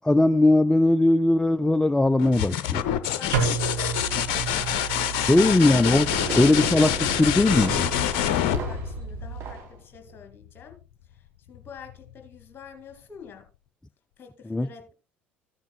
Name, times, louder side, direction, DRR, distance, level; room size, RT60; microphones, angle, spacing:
voice 1, 0.0-2.8 5.3-6.1 6.4-7.9 14.5-14.7, left 2 dB, 10° left, 0.4 m, -19 dB
sound 1, 2.2-9.8 11.5-12.1, left 11 dB, 60° left, 0.6 m, -27 dB
voice 2, 2.9-6.0 8.2-10.8 11.1-13.5 14.2-14.9, left 6 dB, 35° left, 2.5 m, -47 dB
sound 2, 3.3-9.5, right 7 dB, 75° right, 1.9 m, -33 dB
Fireworks, 5.9-9.1 9.4-9.8 10.1-10.2, right 5 dB, 45° right, 3.2 m, -36 dB
14.0 x 9.7 x 2.2 m
figure-of-eight pair, 60°, 6 cm